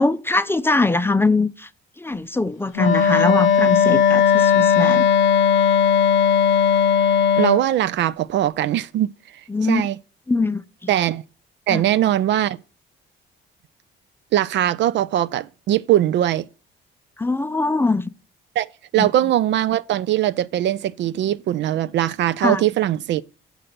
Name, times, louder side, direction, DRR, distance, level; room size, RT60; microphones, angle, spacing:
voice 1, 0.0-1.7 2.0-5.0 9.5-9.8 10.3-10.6 11.7-11.8 17.2-18.1 19.0-19.1 22.4-22.6, left 3 dB, 10° left, 0.4 m, -21 dB
Wind instrument woodwind instrument, 2.7-7.6, left 8 dB, 80° left, 1.0 m, -17 dB
voice 2, 7.4-9.1 9.6-10.0 10.9-11.2 11.7-12.6 14.3-16.5 18.6-18.7 18.9-23.3, right 12 dB, 65° right, 0.4 m, -21 dB
6.6 x 5.0 x 6.0 m
cardioid pair, 90°, 20 cm